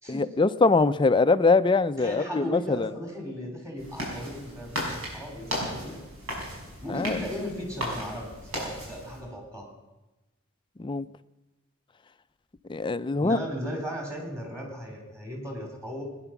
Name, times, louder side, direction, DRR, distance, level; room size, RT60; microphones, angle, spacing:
voice 1, 0.1-2.9 6.9-7.2 10.8-11.1 12.7-13.4, left 3 dB, 25° left, 12 dB, 0.4 m, -23 dB
voice 2, 2.0-6.0 6.8-9.7 13.2-16.0, equal, 15° right, 1 dB, 3.7 m, -36 dB
sound 1, 3.8-9.2, equal, 75° right, 5.8 m, -35 dB
20.0 x 10.0 x 5.9 m, 1.1 s
head